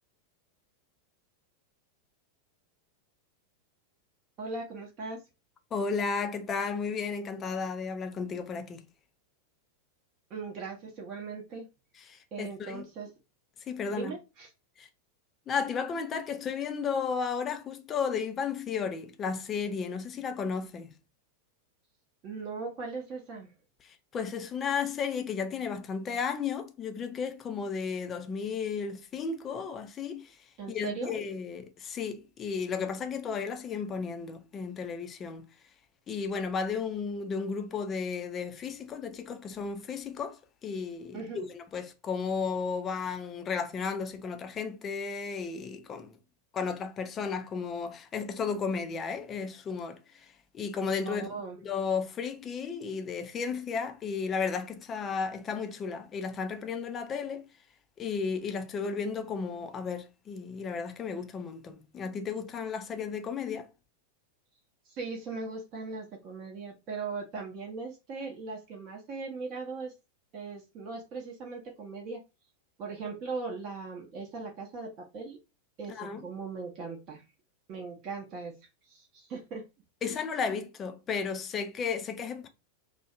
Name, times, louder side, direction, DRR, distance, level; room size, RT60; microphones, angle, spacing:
voice 1, 4.4-5.2 10.3-11.7 12.3-13.1 13.9-14.5 22.2-23.5 30.6-31.2 41.1-41.4 51.0-51.6 64.9-69.9 70.3-72.2 72.8-75.4 75.8-77.2 77.7-78.5 78.9-79.6 80.0-80.2, right 4 dB, 35° right, 0.7 m, -39 dB
voice 2, 5.7-8.9 12.1-12.9 13.7-14.1 14.8-14.9 15.5-20.9 23.8-30.4 30.7-35.5 36.1-46.2 46.5-51.3 51.6-57.5 58.0-63.7 75.9-76.2 80.0-82.5, left 5 dB, 25° left, 0.4 m, -34 dB
2.5 x 2.1 x 2.4 m
figure-of-eight pair, 90°, 0 cm